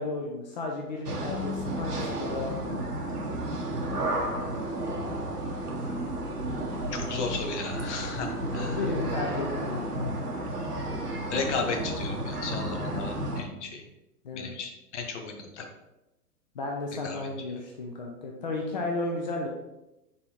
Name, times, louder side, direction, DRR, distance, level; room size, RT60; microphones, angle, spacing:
voice 1, 0.0-2.8 8.5-10.3 14.2-14.5 16.5-19.5, left 2 dB, 30° left, 1 dB, 0.4 m, -34 dB
sound 1, 1.1-13.4, right 1 dB, 85° right, 0.9 m, -32 dB
voice 2, 6.9-8.8 11.3-13.8 14.3-15.7 17.0-17.3, left 4 dB, 50° left, 4 dB, 0.8 m, -34 dB
4.0 x 3.8 x 2.9 m, 0.95 s
figure-of-eight pair, 115°, 46 cm